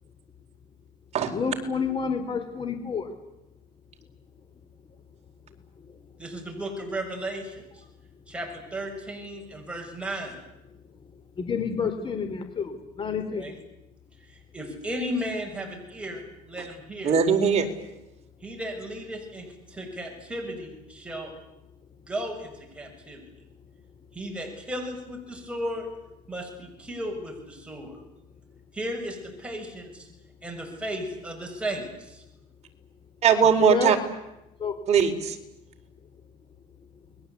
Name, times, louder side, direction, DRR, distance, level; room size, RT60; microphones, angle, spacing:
voice 1, 1.3-3.1 5.8-5.9 11.4-13.5 33.6-34.0 34.6-34.8, left 6 dB, 30° left, 7 dB, 3.8 m, -29 dB
voice 2, 6.2-7.8 8.3-10.4 13.4-13.5 14.2-17.2 18.4-21.3 22.1-23.2 24.1-25.9 26.3-28.0 28.7-30.1 30.4-32.2, equal, 5° right, 1 dB, 7.1 m, -35 dB
voice 3, 17.0-17.7 33.2-34.0 34.9-35.3, right 7 dB, 40° right, 4 dB, 4.2 m, -20 dB
29.5 x 21.5 x 8.5 m, 0.92 s
cardioid pair, 115°, 17 cm